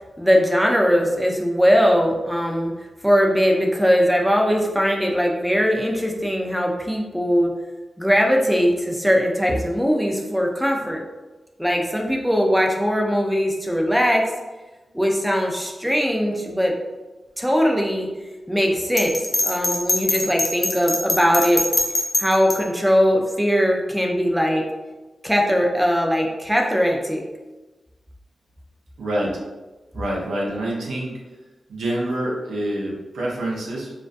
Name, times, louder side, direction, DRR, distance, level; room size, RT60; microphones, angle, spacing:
voice 1, 0.2-2.7 3.0-7.5 8.0-11.1 11.6-14.3 14.9-16.8 17.4-18.1 18.5-21.6 22.2-24.7 25.2-27.2, equal, ahead, 0 dB, 0.5 m, -20 dB
Bell, 19.0-22.6, left 2 dB, 50° left, 0.5 m, -22 dB
voice 2, 29.0-29.4 29.9-31.2 31.7-33.9, right 1 dB, 90° right, -4 dB, 0.5 m, -26 dB
2.3 x 2.1 x 2.5 m, 1.2 s
cardioid pair, 45°, 0 cm